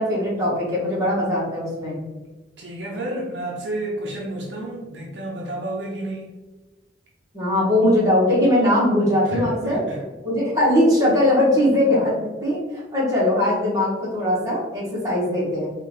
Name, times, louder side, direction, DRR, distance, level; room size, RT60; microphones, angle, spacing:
voice 1, 0.0-2.0 7.3-9.8 10.2-15.7, left 1 dB, 20° right, -7 dB, 1.2 m, -20 dB
voice 2, 2.6-6.2 9.2-10.0, right 1 dB, 65° right, -2 dB, 0.7 m, -30 dB
3.8 x 2.4 x 3.0 m, 1.2 s
head